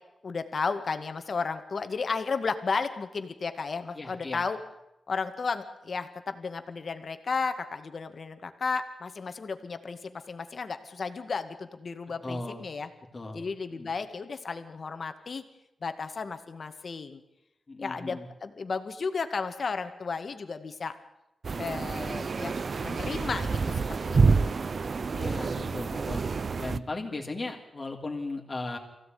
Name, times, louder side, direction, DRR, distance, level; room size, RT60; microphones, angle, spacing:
voice 1, 0.2-4.6 5.1-12.9 13.3-15.4 15.8-17.2 17.8-20.9 21.6-22.6 22.8-24.5, left 4 dB, 55° left, 8 dB, 2.1 m, -33 dB
voice 2, 3.9-4.4 12.2-12.6 13.1-13.5 13.7-13.9 17.7-18.3 25.1-26.2 26.6-28.8, left 2 dB, 35° left, 0 dB, 3.4 m, -36 dB
sound 1, 21.4-26.8, right 4 dB, 50° right, 0.7 m, -28 dB
23.5 x 16.5 x 9.5 m, 0.90 s
wide cardioid pair, 95°, 0 cm